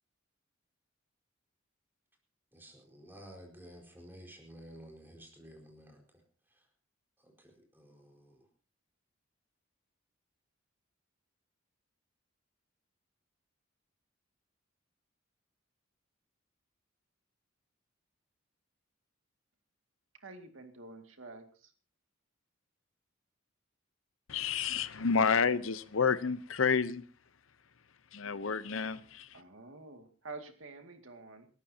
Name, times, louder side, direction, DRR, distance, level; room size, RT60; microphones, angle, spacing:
voice 1, 2.5-6.2 6.5-6.6 7.2-8.5, equal, 10° right, 4.7 m, -53 dB
voice 2, 20.2-21.7 29.3-31.5, right 3 dB, 75° right, 2.3 m, -48 dB
voice 3, 24.3-27.0 28.1-29.3, left 5 dB, 75° left, 0.8 m, -30 dB
28.5 x 13.5 x 2.9 m
head